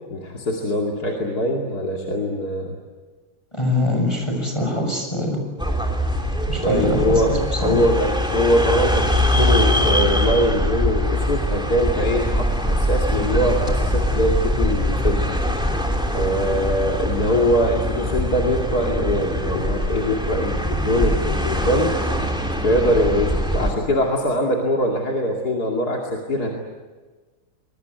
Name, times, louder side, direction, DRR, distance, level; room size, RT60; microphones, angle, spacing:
voice 1, 0.1-2.7 6.6-15.2 16.1-21.9 22.6-26.5, equal, 55° left, 0 dB, 3.0 m, -22 dB
voice 2, 3.5-5.4 6.5-7.3 7.6-7.8, left 1 dB, 15° left, 2 dB, 6.6 m, -23 dB
sound 1, 5.6-23.7, equal, ahead, 3.1 m, -22 dB
24.5 x 22.5 x 9.4 m, 1.3 s
omnidirectional pair, 2.1 m